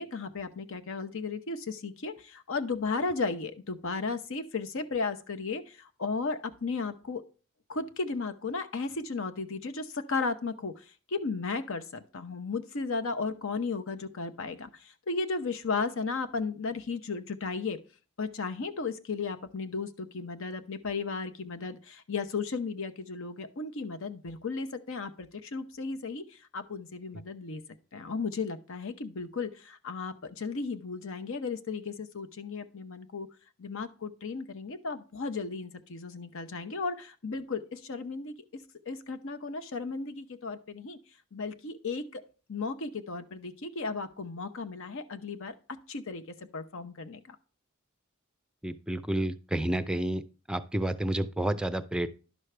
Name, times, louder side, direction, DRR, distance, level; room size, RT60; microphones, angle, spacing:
voice 1, 0.0-7.2 7.7-17.8 18.2-27.6 27.9-33.3 33.6-38.3 38.9-41.0 41.3-42.2 42.5-46.2 46.5-47.4, left 4 dB, 65° left, 10 dB, 0.8 m, -35 dB
voice 2, 48.6-50.2 50.5-52.1, right 1 dB, 5° right, 11 dB, 0.5 m, -30 dB
11.0 x 6.3 x 3.3 m, 0.35 s
head